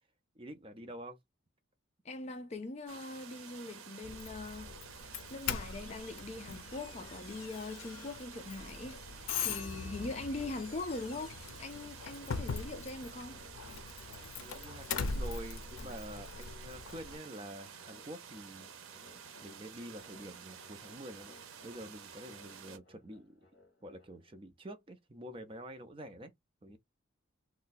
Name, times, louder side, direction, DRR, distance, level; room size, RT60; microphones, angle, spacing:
voice 1, 0.4-1.2 9.8-10.0 12.2-12.3 14.1-18.7 19.4-21.3 21.6-23.4 23.8-26.3 26.6-26.8, equal, 25° right, 0.5 m, -47 dB
voice 2, 2.0-4.7 5.3-13.4, left 2 dB, 30° left, 0.4 m, -42 dB
sound 1, 2.9-22.8, right 7 dB, 90° right, 0.6 m, -51 dB
Doorbell, 4.0-17.2, left 5 dB, 85° left, 0.5 m, -42 dB
sound 2, 6.6-24.4, left 3 dB, 60° left, 1.1 m, -63 dB
2.6 x 2.2 x 3.9 m
head